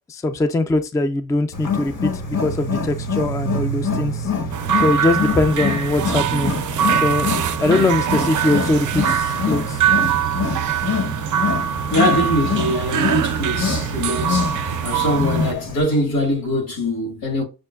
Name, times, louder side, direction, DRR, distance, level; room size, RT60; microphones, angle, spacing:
voice 1, 0.1-4.3 4.8-6.5 6.9-7.3 7.6-9.8, left 2 dB, 10° left, 0.3 m, -21 dB
Wild animals, 1.5-15.8, left 4 dB, 65° left, 1.0 m, -26 dB
sound 1, 4.5-15.5, right 9 dB, 60° right, 0.5 m, -23 dB
voice 2, 11.9-14.6 14.8-17.4, left 1 dB, 80° left, 1.9 m, -22 dB
6.3 x 2.2 x 2.2 m
wide cardioid pair, 130°, 34 cm